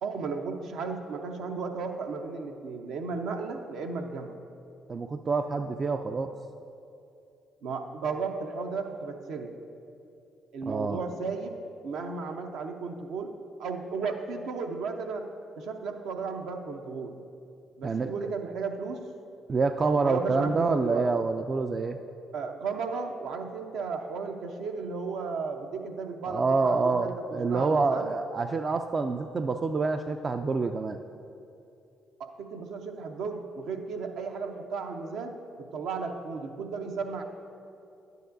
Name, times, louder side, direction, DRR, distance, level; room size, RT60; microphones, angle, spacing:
voice 1, 0.0-4.4 7.6-9.5 10.5-11.6 11.8-13.3 13.6-15.3 15.6-17.1 17.8-19.0 20.0-21.1 22.3-28.1 32.2-37.2, right 4 dB, 75° right, 4 dB, 0.7 m, -34 dB
voice 2, 4.9-6.3 10.7-11.0 17.8-18.1 19.5-22.0 26.3-31.0, right 4 dB, 40° right, 7 dB, 0.3 m, -27 dB
11.5 x 9.3 x 2.6 m, 2.6 s
hypercardioid pair, 50°, 0 cm